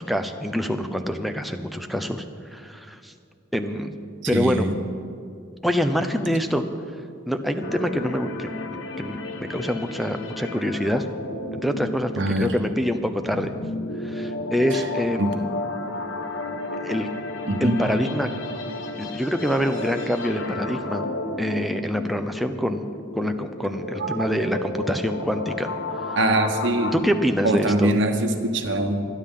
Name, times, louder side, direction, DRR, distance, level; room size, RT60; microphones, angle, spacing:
voice 1, 0.0-2.2 2.5-3.1 3.5-3.9 4.3-4.7 5.6-6.6 7.3-8.5 9.0-11.1 11.5-13.5 14.0-15.5 16.8-17.1 17.6-18.3 19.0-21.0 21.4-22.9 23.2-25.7 26.0-26.2 26.9-27.9, equal, ahead, 5 dB, 0.6 m, -25 dB
voice 2, 4.3-4.8 12.2-12.6 15.2-15.4 17.5-17.9 24.0-24.2 26.2-26.9 27.4-29.1, right 1 dB, 60° right, 4 dB, 1.2 m, -23 dB
sound 1, 7.6-26.9, left 2 dB, 70° left, 1.1 m, -33 dB
26.5 x 10.0 x 3.8 m, 2.4 s
head